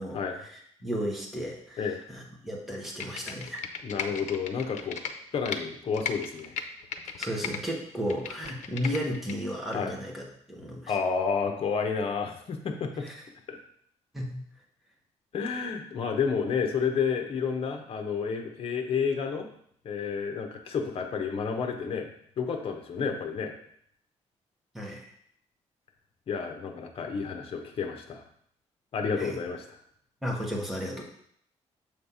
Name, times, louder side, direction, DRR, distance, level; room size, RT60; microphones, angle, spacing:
voice 1, 0.0-3.6 7.2-10.9 13.0-13.2 14.1-14.4 24.7-25.1 29.2-29.4 30.2-31.0, equal, ahead, -2 dB, 1.3 m, -34 dB
Computer keyboard, 2.8-5.6 5.9-7.6 7.9-9.3 9.7-9.8, left 7 dB, 85° left, 0.6 m, -36 dB
voice 2, 3.8-5.0 5.3-6.6 9.7-9.9 10.9-13.0 13.5-13.6 15.3-19.5 19.8-22.1 22.4-23.5 26.3-28.2 28.9-29.6, left 6 dB, 50° left, 4 dB, 0.9 m, -30 dB
7.2 x 3.3 x 5.5 m, 0.66 s
cardioid pair, 150°, 12 cm